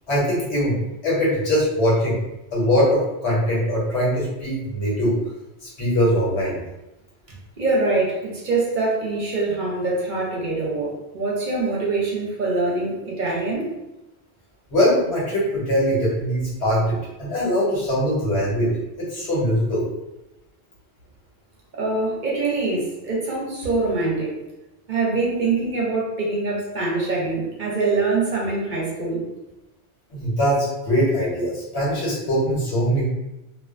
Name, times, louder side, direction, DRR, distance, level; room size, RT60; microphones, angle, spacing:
voice 1, 0.1-2.2 2.5-5.1 5.6-6.6 14.7-18.7 19.0-19.8 30.1-33.1, equal, 90° left, -6 dB, 1.3 m, -22 dB
voice 2, 7.6-13.7 21.7-24.4 24.9-29.3, right 3 dB, 55° right, -4 dB, 0.7 m, -24 dB
2.4 x 2.2 x 2.4 m, 0.95 s
omnidirectional pair, 1.1 m